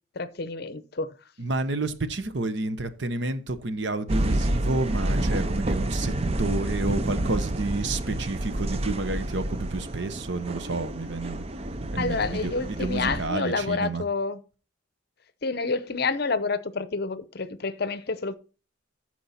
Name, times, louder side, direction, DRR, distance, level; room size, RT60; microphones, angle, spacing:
voice 1, 0.2-1.1 12.0-14.4 15.4-18.4, left 4 dB, 50° left, 0.7 m, -28 dB
voice 2, 1.4-6.1 6.4-11.5 11.9-14.1, right 2 dB, 60° right, 1.0 m, -30 dB
sound 1, 4.1-13.3, right 1 dB, 30° right, 0.5 m, -29 dB
14.0 x 4.6 x 4.2 m
head